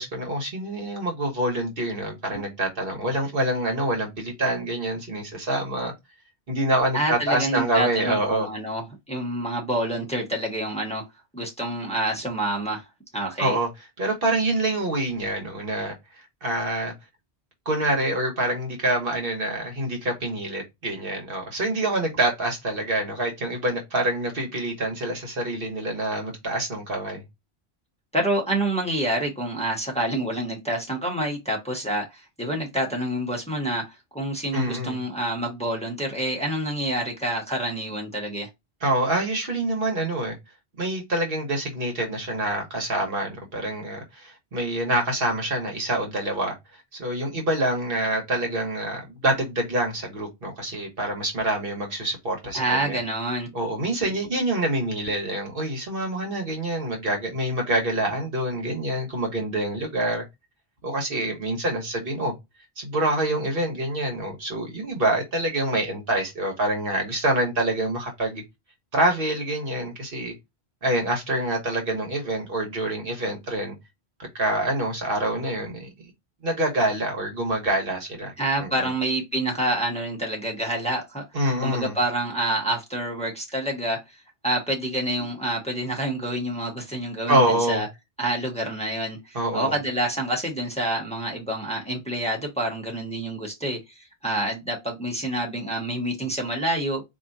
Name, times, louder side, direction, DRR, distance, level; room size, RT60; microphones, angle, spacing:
voice 1, 0.0-5.9 6.5-8.5 13.4-13.7 14.0-15.9 16.4-16.9 17.6-27.2 34.5-35.0 38.8-40.4 40.8-46.6 46.9-53.0 53.5-60.2 60.8-62.3 62.8-68.4 68.9-70.3 70.8-73.7 74.2-75.9 76.4-78.9 81.3-81.9 87.3-87.9 89.3-89.8, right 1 dB, 60° right, 1.4 m, -26 dB
voice 2, 6.9-11.0 11.3-12.8 13.1-13.6 28.1-38.5 52.5-53.5 78.4-81.2 81.6-84.0 84.4-87.9 88.2-97.0, right 1 dB, 5° left, 1.2 m, -27 dB
4.4 x 2.8 x 2.6 m
omnidirectional pair, 1.1 m